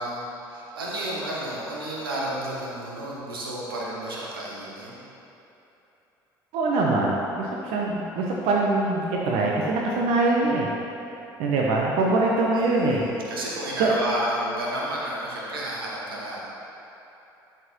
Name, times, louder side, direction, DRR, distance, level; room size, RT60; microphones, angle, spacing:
voice 1, 0.0-5.0 12.5-16.5, right 1 dB, 85° right, -4 dB, 1.3 m, -31 dB
voice 2, 6.5-10.7 11.4-13.0 13.8-13.9, right 2 dB, 60° right, -3 dB, 0.9 m, -23 dB
12.0 x 5.9 x 3.0 m, 3.0 s
figure-of-eight pair, 55°, 12 cm